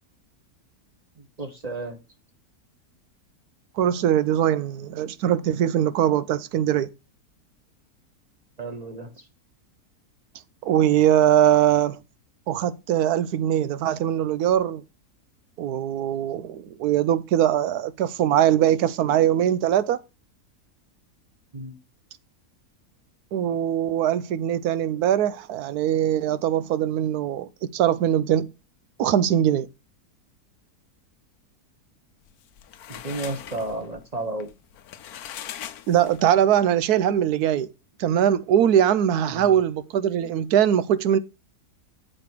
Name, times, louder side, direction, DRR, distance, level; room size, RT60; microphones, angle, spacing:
voice 1, 1.2-2.0 8.6-9.3 21.5-21.8 32.9-34.5 39.3-39.6, right 2 dB, 30° right, 1.2 m, -33 dB
voice 2, 3.8-6.9 10.6-12.0 12.5-14.8 15.6-20.0 23.3-28.5 29.0-29.7 35.9-37.7 38.0-41.2, right 10 dB, 75° right, 1.2 m, -21 dB
sound 1, 32.3-36.5, left 11 dB, 75° left, 1.2 m, -40 dB
7.7 x 5.4 x 4.6 m
omnidirectional pair, 1.6 m